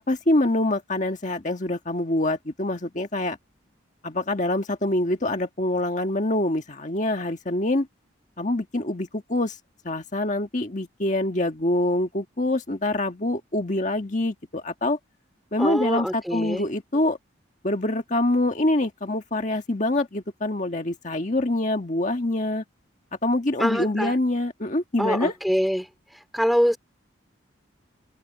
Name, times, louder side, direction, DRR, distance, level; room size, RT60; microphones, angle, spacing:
voice 1, 0.0-3.4 4.0-7.9 8.4-9.6 9.8-15.0 15.5-17.2 17.6-22.6 23.2-25.3, left 1 dB, 40° left, 1.5 m, -25 dB
voice 2, 15.6-16.6 23.6-24.2 25.0-26.8, equal, ahead, 2.7 m, -25 dB
open air
head